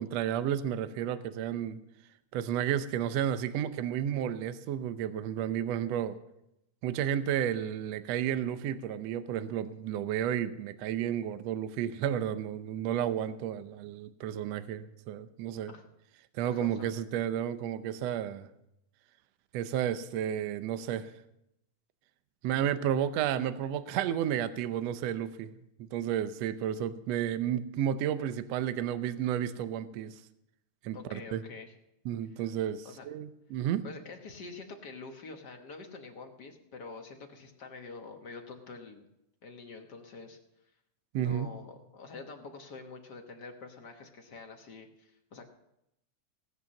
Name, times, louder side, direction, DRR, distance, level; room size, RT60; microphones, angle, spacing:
voice 1, 0.0-1.8 2.3-6.2 6.8-15.7 16.4-18.5 19.5-21.1 22.4-25.5 25.8-30.2 30.8-31.4 32.1-33.9 41.1-41.5, right 10 dB, 70° right, 11 dB, 1.8 m, -32 dB
voice 2, 16.4-16.9 30.9-31.7 32.4-32.5 32.8-33.1 33.8-39.1 39.4-40.4 41.2-45.5, left 4 dB, 50° left, 4 dB, 1.4 m, -46 dB
17.5 x 8.1 x 6.4 m, 0.83 s
omnidirectional pair, 3.4 m